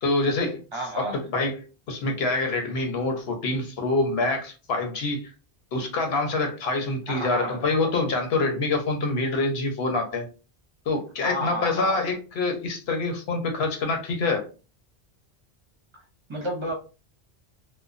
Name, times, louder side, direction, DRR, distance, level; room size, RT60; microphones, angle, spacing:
voice 1, 0.0-0.6 1.0-5.2 5.7-10.3 10.9-14.5, left 3 dB, 80° left, 1.0 m, -26 dB
voice 2, 0.7-1.2 7.1-7.6 11.2-12.0 16.3-16.7, right 1 dB, 30° right, 0.8 m, -31 dB
2.9 x 2.2 x 2.4 m
omnidirectional pair, 1.1 m